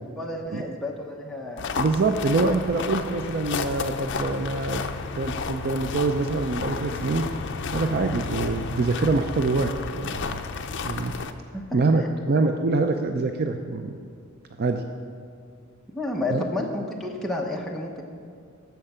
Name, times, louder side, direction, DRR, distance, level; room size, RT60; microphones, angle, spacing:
voice 1, 0.2-1.8 11.5-11.6 15.9-18.0, left 2 dB, ahead, -1 dB, 0.8 m, -31 dB
sound 1, 1.6-11.3, left 4 dB, 55° left, 0.5 m, -32 dB
voice 2, 1.8-4.8 5.2-7.4 7.7-10.4 10.8-11.1 11.7-13.9 14.6-14.8 16.3-16.4, right 3 dB, 50° right, 6 dB, 0.5 m, -25 dB
13.0 x 4.7 x 6.7 m, 2.3 s
head